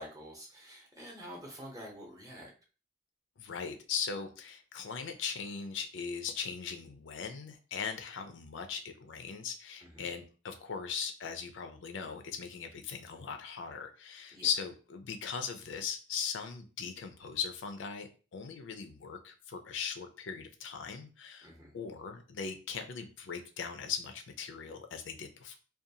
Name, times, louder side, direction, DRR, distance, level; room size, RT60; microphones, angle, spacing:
voice 1, 0.0-2.5 9.8-10.1 14.3-14.5 21.4-21.8, equal, 20° right, -2 dB, 0.7 m, -47 dB
voice 2, 3.4-21.5 21.7-25.6, left 6 dB, 75° left, 6 dB, 0.4 m, -39 dB
2.5 x 2.3 x 2.7 m, 0.36 s
head